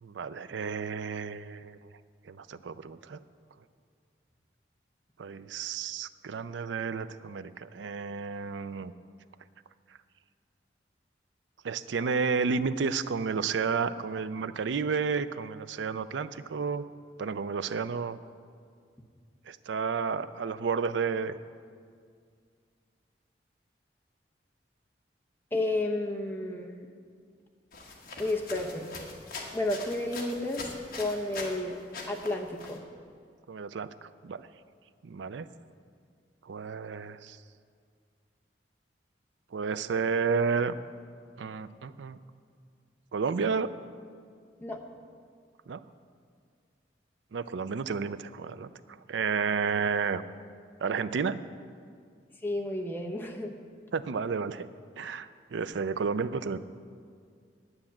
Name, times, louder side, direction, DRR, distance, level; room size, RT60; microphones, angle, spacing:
voice 1, 0.0-1.8 2.3-3.2 5.2-8.9 11.6-16.8 17.2-18.2 19.5-21.3 33.5-34.5 35.0-35.5 36.5-37.4 39.5-40.7 41.4-42.2 43.1-43.7 45.7-45.8 47.3-48.7 49.1-50.2 50.8-51.4 53.9-54.7 55.0-56.6, right 5 dB, 80° right, 14 dB, 0.4 m, -31 dB
voice 2, 25.5-26.7 28.2-28.9 29.5-31.8 32.1-32.8 44.6-44.8 52.4-53.6, left 2 dB, 10° left, 1 dB, 0.9 m, -31 dB
sound 1, 27.7-31.6 31.9-32.8, left 3 dB, 50° left, 1.4 m, -42 dB
9.7 x 8.9 x 7.2 m, 2.1 s
head